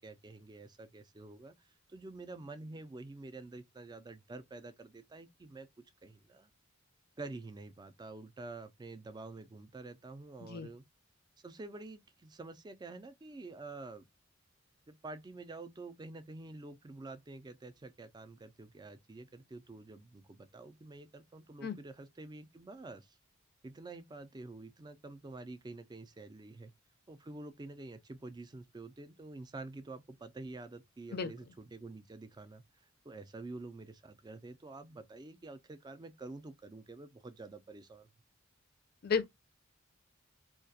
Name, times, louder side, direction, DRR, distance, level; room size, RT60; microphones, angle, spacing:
voice 1, 0.0-5.7 6.0-6.5 7.2-10.8 11.4-14.1 14.9-23.2 23.6-26.7 27.1-32.6 33.0-38.1, right 2 dB, 20° right, 0.4 m, -48 dB
voice 2, 10.4-10.7 21.6-21.8 31.1-31.3 39.0-39.3, left 5 dB, 50° left, 0.4 m, -33 dB
2.3 x 2.2 x 2.6 m
head